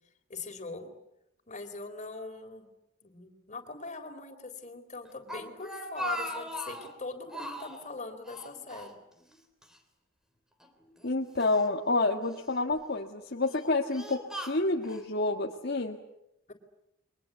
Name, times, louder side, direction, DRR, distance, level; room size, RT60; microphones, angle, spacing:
voice 1, 0.3-0.9 1.5-2.7 3.0-9.0 16.5-16.6, left 3 dB, 40° left, 6 dB, 3.9 m, -41 dB
Speech, 5.0-7.0 7.3-7.9 8.2-9.4 9.6-9.8 10.6-11.6 12.3-12.7 13.4-15.0, equal, 5° right, 3.4 m, -40 dB
voice 2, 11.0-16.0, left 2 dB, 55° left, 2 dB, 1.8 m, -29 dB
29.5 x 23.5 x 8.2 m, 0.83 s
head